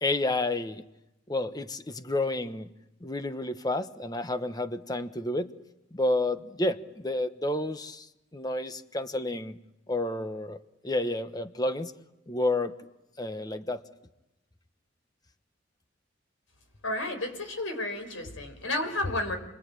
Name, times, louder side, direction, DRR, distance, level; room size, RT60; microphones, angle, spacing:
voice 1, 0.0-0.8 1.3-2.7 3.0-5.5 5.9-8.1 8.3-9.6 9.9-10.6 10.8-11.9 12.3-12.7 13.2-13.8, left 2 dB, 20° left, 10 dB, 1.2 m, -30 dB
voice 2, 16.8-19.4, left 2 dB, 85° left, 5 dB, 5.9 m, -31 dB
29.5 x 22.5 x 8.9 m, 0.91 s
head